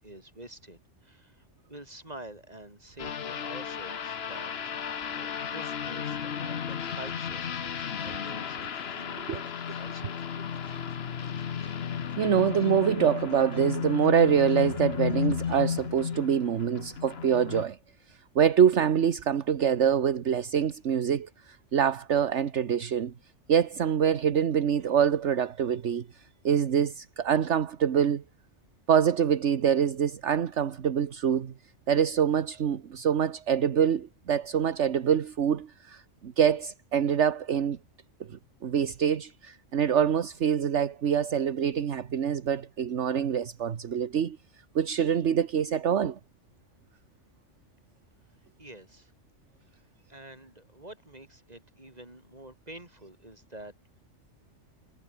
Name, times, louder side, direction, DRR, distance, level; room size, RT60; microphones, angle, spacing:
voice 1, 0.0-10.3 48.6-49.1 49.7-49.8 50.1-53.7, right 1 dB, 30° right, 5.0 m, -47 dB
sound 1, 3.0-17.6, left 7 dB, 55° left, 1.2 m, -33 dB
sound 2, 6.6-15.6, left 1 dB, 80° left, 8.4 m, -59 dB
voice 2, 12.2-17.8 18.3-23.1 23.5-26.0 26.4-28.2 28.9-31.5 31.9-37.8 38.3-44.4 44.7-46.2, right 8 dB, 70° right, 1.4 m, -25 dB
omnidirectional pair, 1.3 m